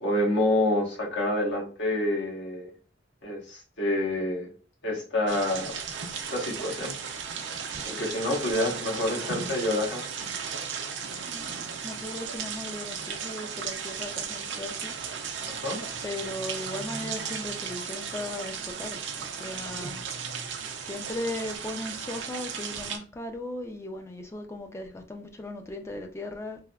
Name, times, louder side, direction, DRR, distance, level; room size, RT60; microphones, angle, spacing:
voice 1, 0.0-2.7 3.2-4.5 4.8-5.8 6.3-6.9 7.9-10.1 15.5-15.8, left 1 dB, 70° left, 1.1 m, -27 dB
sound 1, 5.3-23.0, right 6 dB, 80° right, 0.5 m, -35 dB
voice 2, 11.2-11.5 11.8-14.9 16.0-20.0 20.9-26.6, left 1 dB, 15° left, 0.4 m, -37 dB
3.3 x 2.7 x 2.3 m
head